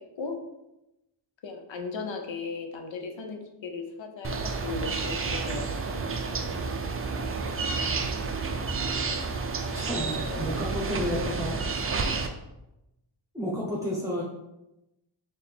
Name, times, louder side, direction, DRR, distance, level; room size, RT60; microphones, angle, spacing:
voice 1, 1.4-6.2 9.0-9.2 10.0-10.5 11.1-11.3, left 4 dB, 65° left, 4 dB, 0.8 m, -37 dB
sound 1, 4.2-12.3, right 4 dB, 30° right, 0.4 m, -30 dB
voice 2, 9.7-11.6 13.3-14.2, left 1 dB, 5° right, -5 dB, 0.9 m, -31 dB
4.2 x 2.6 x 3.5 m, 0.92 s
cardioid pair, 75°, 49 cm